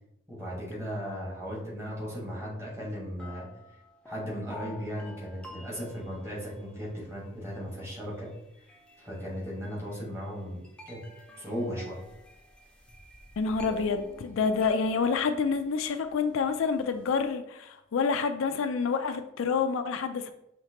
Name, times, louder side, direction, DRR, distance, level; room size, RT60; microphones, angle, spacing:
voice 1, 0.3-3.5 4.0-8.3 9.0-11.0 11.4-12.1, equal, 15° right, -6 dB, 1.5 m, -36 dB
sound 1, 2.5-2.6 3.2-17.3, left 1 dB, 5° left, 0.5 m, -50 dB
voice 2, 13.4-20.3, left 5 dB, 75° left, 7 dB, 0.4 m, -28 dB
5.7 x 2.9 x 2.9 m, 0.83 s
head